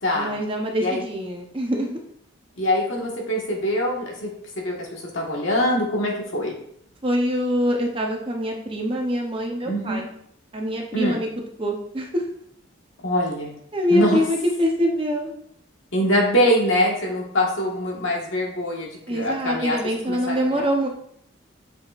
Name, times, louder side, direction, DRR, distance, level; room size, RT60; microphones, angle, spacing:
voice 1, 0.1-2.0 7.0-10.1 10.5-11.3 11.6-12.2 13.7-15.3 19.1-20.9, equal, 25° right, 1 dB, 0.8 m, -24 dB
voice 2, 2.6-4.3 4.6-6.5 9.6-10.0 10.9-11.2 13.0-13.5 13.9-14.2 15.9-19.8 20.1-20.6, equal, 75° left, -2 dB, 1.7 m, -23 dB
7.1 x 5.6 x 2.5 m, 0.69 s
head